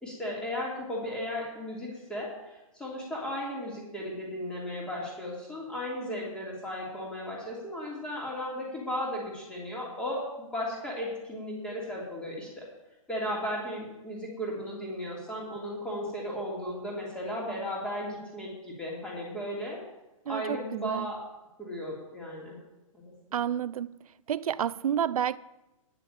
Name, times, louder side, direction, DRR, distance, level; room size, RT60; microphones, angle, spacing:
voice 1, 0.0-12.6 13.1-19.8 20.3-21.2 21.6-22.6 22.9-23.4, equal, 5° left, 3.0 m, -35 dB
voice 2, 20.3-21.1 23.3-24.0 24.3-25.4, right 9 dB, 90° right, 0.5 m, -30 dB
9.9 x 6.8 x 9.0 m
hypercardioid pair, 160°, 18 cm